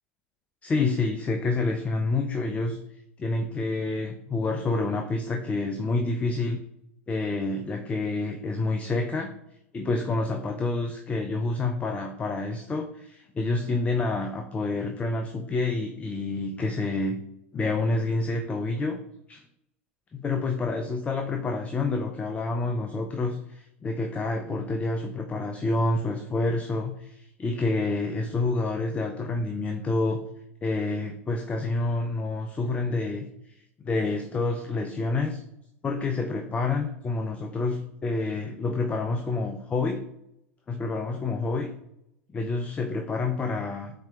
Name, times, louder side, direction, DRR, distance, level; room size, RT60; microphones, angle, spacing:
voice 1, 0.6-2.8 3.2-6.6 7.1-9.3 9.7-17.2 17.5-19.0 19.3-19.4 20.1-30.2 30.6-33.6 33.8-35.4 35.8-40.0 40.7-41.7 42.3-43.9, left 3 dB, 20° left, 4 dB, 0.3 m, -28 dB
4.2 x 2.8 x 2.3 m, 0.80 s
hypercardioid pair, 90°, 7 cm